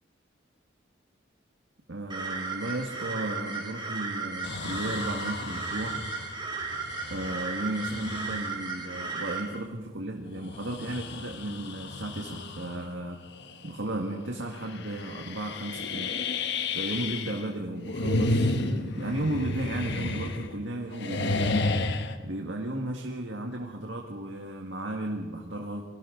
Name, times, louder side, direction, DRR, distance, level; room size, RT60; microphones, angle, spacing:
voice 1, 1.9-6.0 7.1-13.2 13.6-16.2 16.7-21.4 22.2-25.8, right 1 dB, 75° right, 1 dB, 1.9 m, -34 dB
sound 1, 2.1-9.4, right 4 dB, 25° right, 3.7 m, -35 dB
sound 2, 4.4-8.6 9.2-9.3 10.3-12.9 13.3-13.7 14.0-14.1 14.6-17.5 17.8-20.6 20.9-22.2, left 2 dB, 65° left, 1.2 m, -32 dB
29.5 x 22.5 x 4.0 m, 1.3 s
head